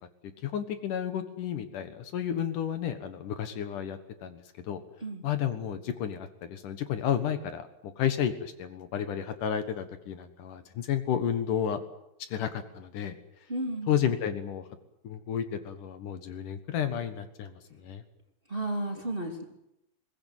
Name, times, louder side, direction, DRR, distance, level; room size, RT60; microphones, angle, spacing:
voice 1, 0.4-4.8 5.2-11.8 12.3-13.2 13.9-14.6 15.0-18.0, left 9 dB, 70° left, 9 dB, 2.8 m, -32 dB
voice 2, 13.5-14.0 18.5-19.4, right 1 dB, 15° right, 2 dB, 2.7 m, -33 dB
21.5 x 20.0 x 9.2 m, 0.83 s
omnidirectional pair, 4.0 m